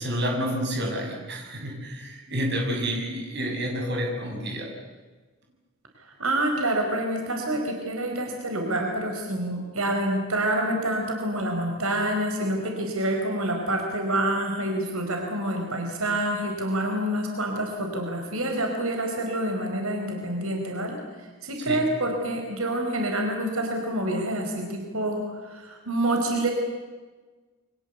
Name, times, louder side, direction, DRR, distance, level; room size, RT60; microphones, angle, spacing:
voice 1, 0.0-4.7 21.6-21.8, equal, 55° right, 1 dB, 7.1 m, -29 dB
voice 2, 6.0-26.5, right 1 dB, 85° right, 2 dB, 4.9 m, -27 dB
29.0 x 24.5 x 8.3 m, 1.3 s
head